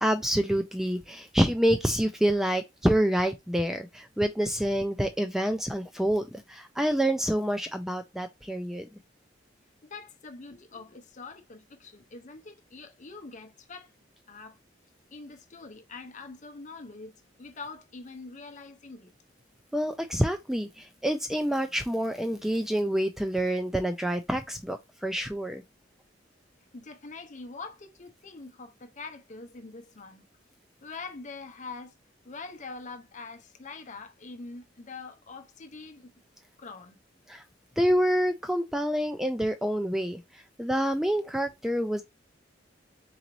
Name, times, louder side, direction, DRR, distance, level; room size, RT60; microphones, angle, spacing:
voice 1, 0.0-8.9 19.7-25.6 37.3-37.4 37.8-42.0, equal, ahead, 0.3 m, -27 dB
voice 2, 9.8-13.9 14.3-14.6 15.1-19.1 26.7-30.2 30.8-31.9 32.2-36.1 36.6-37.0, left 3 dB, 45° left, 0.7 m, -44 dB
3.9 x 3.8 x 3.0 m
head